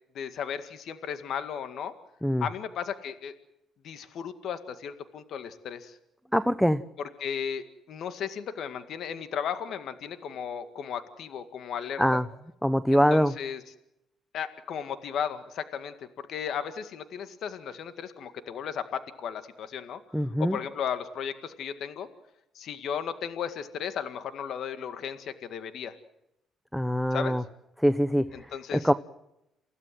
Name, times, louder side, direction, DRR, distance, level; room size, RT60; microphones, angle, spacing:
voice 1, 0.1-1.9 2.4-3.3 3.8-6.0 7.2-12.2 12.9-13.6 14.3-22.1 22.5-25.9 27.1-27.4 28.3-28.9, left 8 dB, 65° left, 9 dB, 2.0 m, -35 dB
voice 2, 6.3-6.8 12.0-12.3 12.6-13.3 20.1-20.6 26.7-27.4 27.8-28.9, equal, ahead, 14 dB, 1.0 m, -24 dB
29.0 x 16.5 x 7.7 m, 0.86 s
cardioid pair, 90°, 0 cm